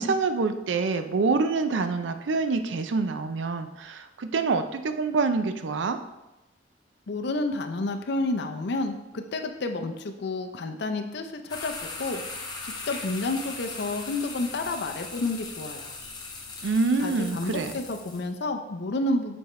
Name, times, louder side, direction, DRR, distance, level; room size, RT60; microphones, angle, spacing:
voice 1, 0.0-6.0 16.6-17.7, right 4 dB, 85° right, 8 dB, 0.5 m, -26 dB
voice 2, 7.1-12.2 12.6-15.9 17.0-19.4, left 2 dB, 65° left, 5 dB, 0.5 m, -30 dB
sound 1, 11.5-18.3, left 3 dB, 25° left, 0.8 m, -39 dB
6.9 x 4.3 x 3.1 m, 0.98 s
head